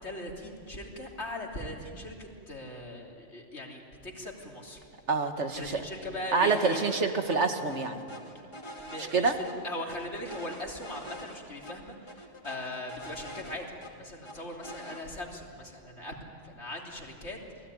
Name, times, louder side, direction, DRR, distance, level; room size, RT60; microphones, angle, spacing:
voice 1, 0.0-4.8 5.6-6.8 8.8-11.9 12.4-13.6 13.9-16.1 16.4-17.4, left 1 dB, 65° left, 0 dB, 3.6 m, -39 dB
voice 2, 5.1-5.8 6.3-8.0 9.0-9.4, right 4 dB, 70° right, 6 dB, 2.1 m, -27 dB
sound 1, 6.4-7.0 7.3-7.4 7.7-9.5 9.9-11.4 11.6-11.7 12.1-13.9 14.2-15.0, equal, 25° left, 2.8 m, -44 dB
28.0 x 20.0 x 9.8 m, 2.4 s
omnidirectional pair, 1.2 m